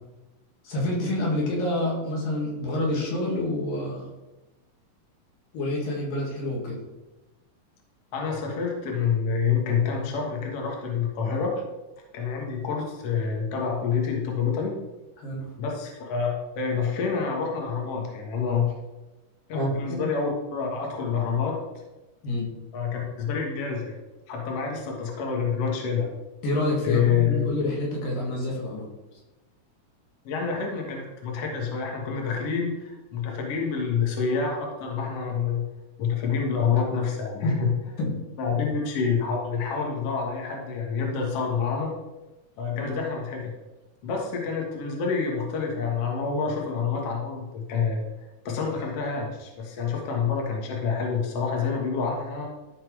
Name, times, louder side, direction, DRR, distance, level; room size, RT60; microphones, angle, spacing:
voice 1, 0.6-4.1 5.5-6.8 15.2-15.5 19.5-20.0 22.2-22.5 26.4-28.9 37.4-37.6 38.0-38.1 42.7-42.9, left 1 dB, 85° left, -2 dB, 3.8 m, -28 dB
voice 2, 8.1-11.5 12.1-14.7 15.6-18.8 19.5-21.6 22.7-23.9 24.3-26.1 26.8-27.5 30.2-35.6 36.0-37.7 38.4-41.9 42.6-43.5 44.0-48.0 48.5-52.5, left 6 dB, 55° left, 0 dB, 2.3 m, -27 dB
13.0 x 4.3 x 4.8 m, 1.1 s
omnidirectional pair, 3.8 m